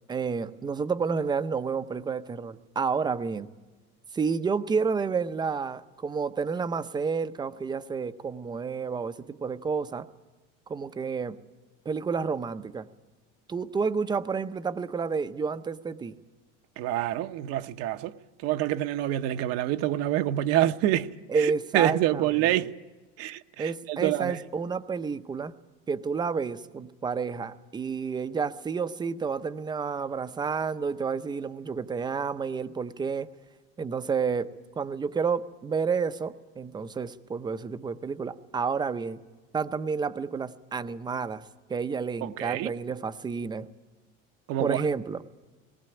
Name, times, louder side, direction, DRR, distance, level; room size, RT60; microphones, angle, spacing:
voice 1, 0.1-3.5 4.1-10.1 10.7-11.4 11.9-12.9 13.5-16.2 21.3-22.5 23.6-25.5 25.9-33.3 33.8-39.2 39.5-41.4 41.7-43.7 44.6-45.2, right 5 dB, 15° right, 0.6 m, -30 dB
voice 2, 16.8-18.1 18.4-21.1 21.4-22.7 23.2-23.7 24.0-24.4 42.2-42.7 44.5-44.8, right 13 dB, 55° right, 0.8 m, -26 dB
19.5 x 18.5 x 8.9 m
cardioid pair, 155°, 29 cm